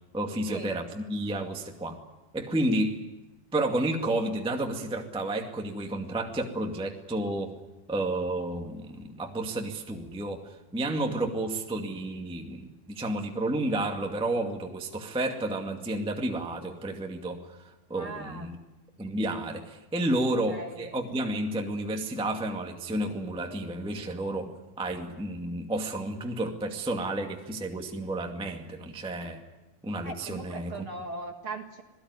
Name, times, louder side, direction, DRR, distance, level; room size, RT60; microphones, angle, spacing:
voice 1, 0.1-2.0 2.3-3.1 3.5-7.6 7.9-18.6 19.0-29.4 29.8-30.7, right 1 dB, 5° right, 2 dB, 1.0 m, -31 dB
voice 2, 18.0-18.5 20.5-20.9 30.0-31.8, right 3 dB, 45° right, 3 dB, 1.9 m, -39 dB
27.0 x 18.0 x 9.8 m, 1.0 s
omnidirectional pair, 4.4 m